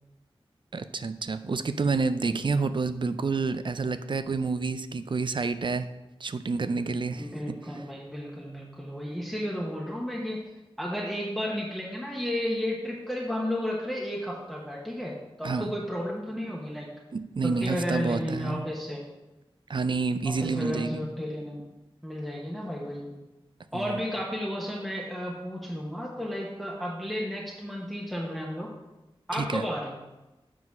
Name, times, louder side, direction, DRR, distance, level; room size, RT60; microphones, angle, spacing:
voice 1, 0.7-5.9 6.2-7.3 15.4-15.7 17.1-18.6 19.7-21.1 23.7-24.0 29.3-29.6, right 4 dB, 55° right, 12 dB, 0.4 m, -29 dB
voice 2, 7.1-10.4 10.8-16.9 17.4-19.0 20.2-21.6 22.0-23.1 23.7-28.7 29.3-30.0, equal, ahead, -4 dB, 1.0 m, -33 dB
7.4 x 4.0 x 5.9 m, 1.1 s
wide cardioid pair, 80°, 10 cm